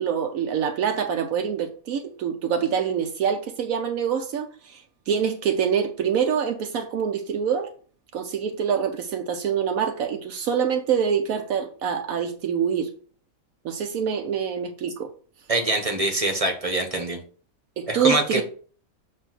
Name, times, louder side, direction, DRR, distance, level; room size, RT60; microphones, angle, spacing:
voice 1, 0.0-7.7 8.1-12.9 13.6-15.1 17.8-18.4, right 7 dB, 75° right, 1.1 m, -25 dB
voice 2, 15.5-17.2 17.9-18.4, right 2 dB, 25° right, 1.0 m, -24 dB
7.5 x 2.7 x 5.9 m
omnidirectional pair, 1.5 m